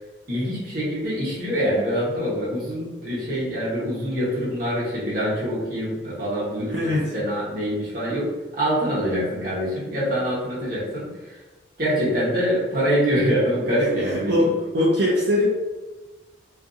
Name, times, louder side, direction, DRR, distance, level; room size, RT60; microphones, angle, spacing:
voice 1, 0.3-11.4 11.8-14.5, equal, 50° right, -7 dB, 1.0 m, -25 dB
voice 2, 6.7-7.1 14.0-14.5 14.7-15.5, left 1 dB, 65° right, -5 dB, 0.4 m, -21 dB
2.5 x 2.5 x 2.5 m, 1.2 s
head